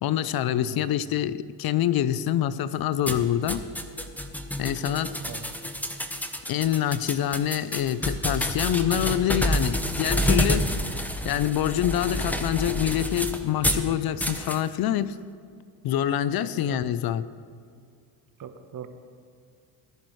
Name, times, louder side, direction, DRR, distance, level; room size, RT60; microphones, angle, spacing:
voice 1, 0.0-3.6 4.6-5.1 6.5-10.7 11.2-15.2 15.8-17.2, left 11 dB, 50° left, 16 dB, 0.6 m, -26 dB
voice 2, 0.5-0.9 5.2-5.5 16.4-16.9 18.4-18.9, right 8 dB, 40° right, 8 dB, 1.1 m, -41 dB
sound 1, 3.1-13.9 14.2-14.6, equal, 5° left, 1.0 m, -28 dB
19.0 x 10.5 x 3.2 m, 2.2 s
supercardioid pair, 80°, 47 cm